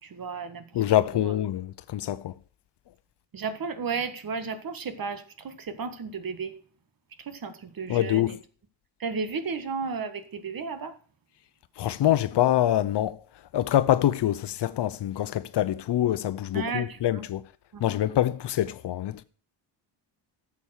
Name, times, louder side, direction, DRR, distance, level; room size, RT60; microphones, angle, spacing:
voice 1, 0.0-0.8 1.1-1.3 3.3-6.5 7.2-8.4 9.0-11.0 16.5-17.3 17.7-17.9, right 5 dB, 45° right, 1.7 m, -34 dB
voice 2, 0.7-2.3 7.9-8.4 11.8-13.2 13.5-17.4 17.8-19.2, left 12 dB, 60° left, 0.8 m, -25 dB
12.0 x 7.3 x 6.4 m
cardioid pair, 110°, 47 cm